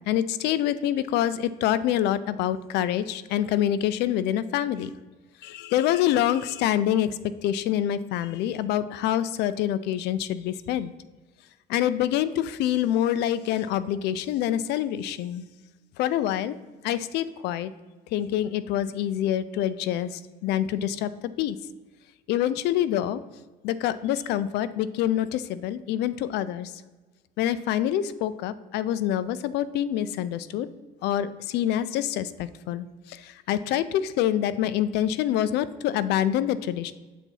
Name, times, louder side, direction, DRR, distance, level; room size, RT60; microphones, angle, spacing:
voice 1, 0.1-4.9 5.4-10.9 11.7-15.4 16.0-16.6 16.8-17.7 18.1-21.1 21.4-21.6 22.3-23.2 23.6-26.7 27.4-30.7 31.0-36.9, left 11 dB, 85° left, 15 dB, 0.4 m, -26 dB
7.2 x 3.9 x 4.5 m, 1.3 s
cardioid pair, 110°, 17 cm